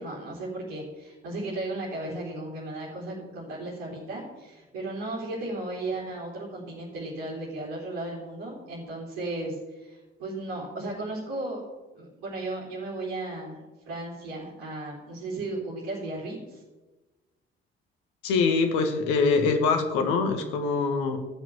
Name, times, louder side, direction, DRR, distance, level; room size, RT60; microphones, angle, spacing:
voice 1, 0.0-11.6 11.9-16.6, right 2 dB, 65° right, -7 dB, 3.7 m, -35 dB
voice 2, 18.2-21.2, left 4 dB, 70° left, 6 dB, 1.7 m, -24 dB
15.0 x 6.2 x 7.2 m, 1.2 s
figure-of-eight pair, 45°, 30 cm